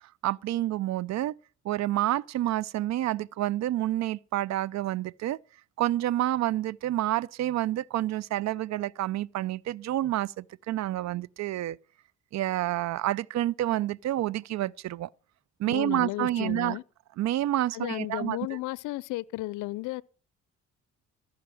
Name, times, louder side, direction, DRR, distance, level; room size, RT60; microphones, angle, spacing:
voice 1, 0.2-1.3 1.6-5.4 5.8-11.8 12.3-15.1 15.6-16.8 17.2-18.4, right 14 dB, 65° right, 0.5 m, -28 dB
voice 2, 15.7-16.8 17.7-20.0, left 19 dB, 90° left, 0.5 m, -34 dB
14.5 x 5.9 x 7.6 m
cardioid pair, 90°, 30 cm